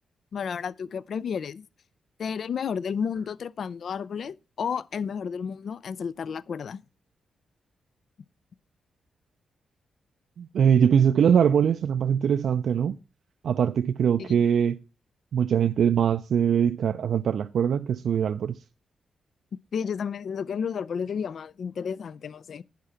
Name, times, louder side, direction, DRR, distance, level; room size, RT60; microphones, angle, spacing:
voice 1, 0.3-1.7 2.2-6.8 14.2-14.4 19.7-22.6, left 6 dB, 65° left, 0.4 m, -32 dB
voice 2, 10.4-13.0 13.4-14.8 15.3-18.6, right 8 dB, 75° right, 0.4 m, -22 dB
10.5 x 4.8 x 5.6 m
cardioid pair, 60°, 0 cm